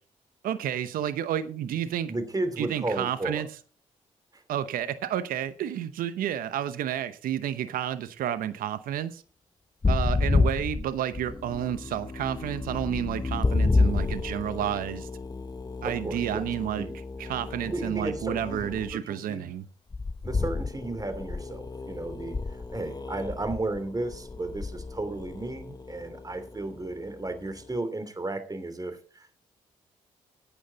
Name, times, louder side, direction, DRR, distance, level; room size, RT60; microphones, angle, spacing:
voice 1, 0.4-2.1 2.6-3.5 4.5-9.2 9.9-15.1 15.8-16.9 17.2-19.6, right 10 dB, 75° right, 13 dB, 0.9 m, -30 dB
voice 2, 2.1-3.4 4.3-4.4 15.8-16.5 16.8-16.9 17.7-19.5 20.2-22.4 22.7-29.4, right 2 dB, 25° right, 10 dB, 2.9 m, -34 dB
sound 1, 9.8-18.9 19.9-27.5, left 3 dB, 25° left, 0.9 m, -30 dB
12.5 x 9.0 x 4.1 m, 0.39 s
hypercardioid pair, 45°, 15 cm